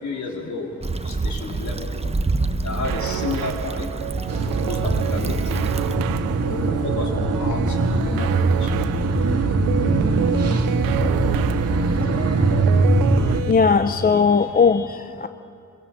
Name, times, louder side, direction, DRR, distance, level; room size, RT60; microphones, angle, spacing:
voice 1, 0.0-1.9 2.6-3.9 4.7-5.6 6.4-8.7, left 3 dB, 55° left, 0 dB, 4.1 m, -31 dB
Stream / Traffic noise roadway noise / Trickle dribble, 0.8-6.0, right 3 dB, 20° right, 0.9 m, -27 dB
sound 1, 2.8-13.5, right 13 dB, 80° right, 0.6 m, -30 dB
sound 2, 4.3-13.4, right 2 dB, 45° right, 1.8 m, -21 dB
voice 2, 11.0-11.4 12.2-12.3 13.5-15.3, left 5 dB, 25° left, 10 dB, 0.6 m, -19 dB
26.5 x 16.5 x 7.6 m, 2.5 s
cardioid pair, 70°, 34 cm